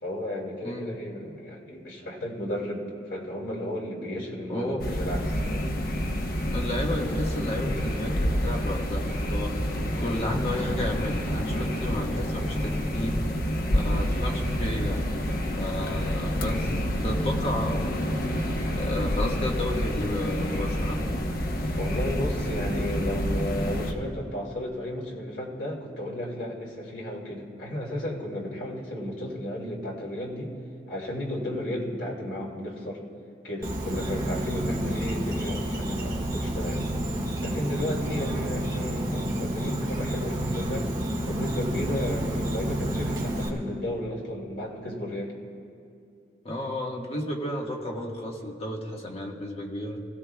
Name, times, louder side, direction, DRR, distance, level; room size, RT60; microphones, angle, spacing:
voice 1, 0.0-5.7 12.3-12.9 15.2-16.0 17.7-17.8 21.8-30.5 30.9-33.0 33.4-36.8 37.4-40.9 41.2-45.3, left 1 dB, 80° left, -3 dB, 2.8 m, -33 dB
voice 2, 0.6-0.9 4.5-4.8 6.5-9.5 10.0-13.2 13.7-15.1 15.5-16.7 17.0-18.0 18.8-21.0 34.7-34.9 46.4-50.0, left 1 dB, 35° left, -1 dB, 1.6 m, -32 dB
sound 1, 4.8-23.9, equal, 55° left, 1.1 m, -28 dB
Insect, 33.6-43.5, right 1 dB, 25° right, 1.7 m, -30 dB
26.0 x 16.0 x 2.4 m, 2.4 s
head